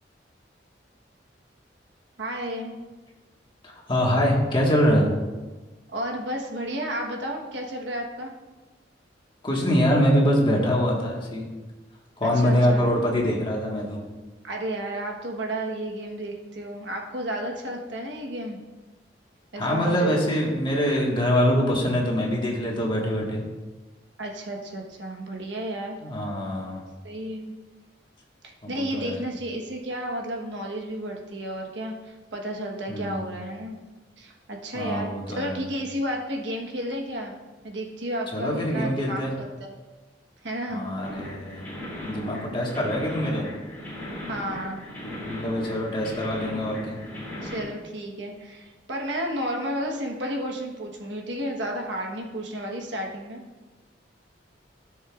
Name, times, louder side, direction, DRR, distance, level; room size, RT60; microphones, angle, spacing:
voice 1, 2.2-2.8 5.9-8.3 12.2-12.9 14.4-18.6 19.5-20.2 24.2-26.0 27.0-27.5 28.4-33.8 34.2-37.3 37.6-39.8 40.4-40.8 44.3-44.8 47.4-53.4, right 1 dB, 75° right, 1 dB, 1.3 m, -32 dB
voice 2, 3.6-5.1 9.4-11.5 12.2-14.1 19.5-23.4 26.0-26.8 28.6-29.2 32.9-33.2 34.7-35.6 38.3-39.4 40.7-41.6 42.0-43.5 45.0-47.0, equal, 30° left, -2 dB, 1.7 m, -24 dB
sound 1, 41.0-47.6, left 1 dB, 10° left, 2.9 m, -37 dB
14.0 x 6.5 x 2.5 m, 1.2 s
head